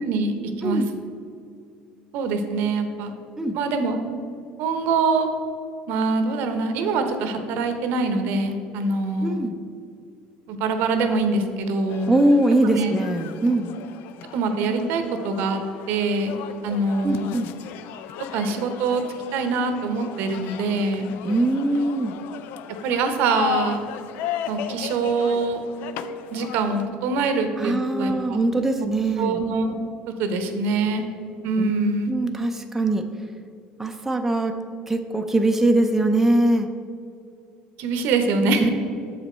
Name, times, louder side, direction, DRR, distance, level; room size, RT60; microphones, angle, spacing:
voice 1, 0.1-0.8 2.1-3.1 3.5-4.0 4.6-5.3 5.9-9.4 10.5-12.1 12.7-12.9 14.3-15.6 15.9-16.3 16.6-17.3 18.3-19.0 19.3-21.1 22.8-23.8 24.5-25.6 26.3-28.4 29.2-29.7 30.2-31.0 31.4-32.1 37.8-38.7, right 3 dB, 70° right, 7 dB, 0.8 m, -24 dB
voice 2, 9.2-9.5 12.1-13.7 17.0-17.5 21.2-22.2 27.6-29.4 31.6-31.7 32.1-33.1 33.8-34.6 34.9-36.7 38.6-38.7, right 1 dB, 10° right, 4 dB, 0.5 m, -22 dB
sound 1, 11.9-26.9, left 10 dB, 70° left, 0.4 m, -36 dB
7.1 x 5.1 x 4.3 m, 2.4 s
supercardioid pair, 110°, 3 cm